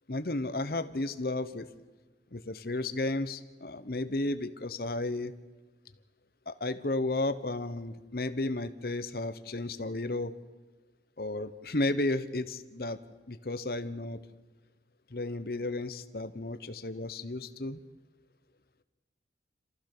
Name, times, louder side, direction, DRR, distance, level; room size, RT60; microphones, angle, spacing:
voice 1, 0.1-1.7 2.3-5.3 6.5-10.3 11.2-13.0 13.3-14.2 15.1-17.8, left 2 dB, 55° left, 11 dB, 1.0 m, -33 dB
28.0 x 14.5 x 6.7 m, 1.2 s
head